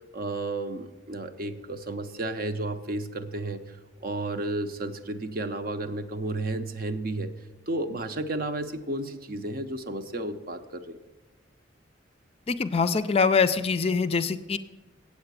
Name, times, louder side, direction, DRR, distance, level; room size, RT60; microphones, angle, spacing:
voice 1, 0.1-3.8 4.0-11.0, right 2 dB, 50° right, 8 dB, 0.7 m, -32 dB
voice 2, 12.5-14.6, left 5 dB, 30° left, 11 dB, 0.4 m, -24 dB
8.3 x 7.8 x 8.1 m, 1.2 s
head